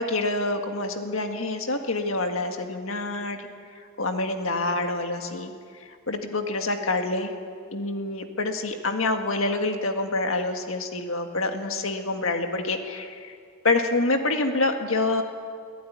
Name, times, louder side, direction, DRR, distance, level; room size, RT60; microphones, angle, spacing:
voice 1, 0.0-3.5 4.0-5.5 6.1-7.3 7.7-13.4 13.6-15.2, left 2 dB, 65° left, 5 dB, 1.8 m, -27 dB
22.5 x 14.5 x 9.5 m, 2.2 s
head